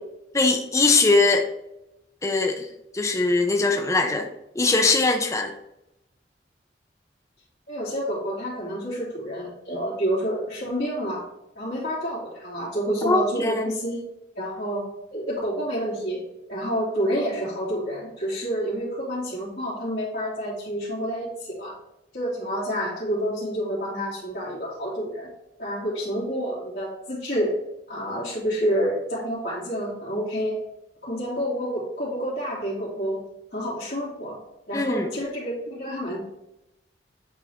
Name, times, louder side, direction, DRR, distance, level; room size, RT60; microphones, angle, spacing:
voice 1, 0.3-1.5 2.2-2.7 2.9-4.3 4.6-5.5 13.1-13.6 34.7-35.1, left 3 dB, 15° left, 4 dB, 0.5 m, -21 dB
voice 2, 7.7-11.2 11.5-14.0 14.4-16.2 16.5-21.7 22.1-25.3 25.6-27.6 27.9-30.6 31.0-33.2 33.5-34.4 34.7-36.2, equal, 55° left, -12 dB, 2.6 m, -28 dB
8.6 x 3.9 x 3.5 m, 0.87 s
head